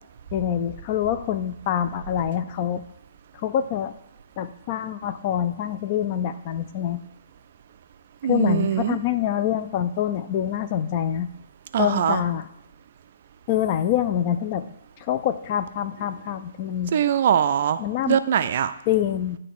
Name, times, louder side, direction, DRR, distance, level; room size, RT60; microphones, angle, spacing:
voice 1, 0.3-2.8 3.4-3.9 4.4-7.0 8.3-11.3 11.8-12.5 13.5-14.7 15.1-16.9 17.8-18.2 18.9-19.4, left 10 dB, 35° left, 11 dB, 0.3 m, -25 dB
voice 2, 8.2-9.0 11.7-12.2 16.9-17.8 18.1-18.7, right 9 dB, 50° right, 12 dB, 0.3 m, -22 dB
8.2 x 3.2 x 3.9 m, 0.84 s
figure-of-eight pair, 130°, 0 cm